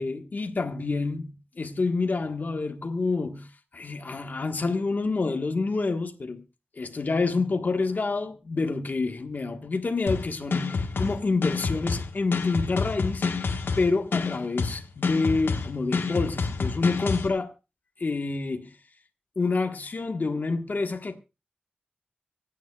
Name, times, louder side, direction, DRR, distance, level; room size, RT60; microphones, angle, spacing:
voice 1, 0.0-3.5 3.7-6.4 6.8-13.2 13.8-17.5 18.0-18.7 19.3-21.2, left 3 dB, 55° left, 1.4 m, -28 dB
sound 1, 10.1-17.3, left 4 dB, 85° left, 1.3 m, -28 dB
25.0 x 9.3 x 2.3 m
wide cardioid pair, 75°, 4 cm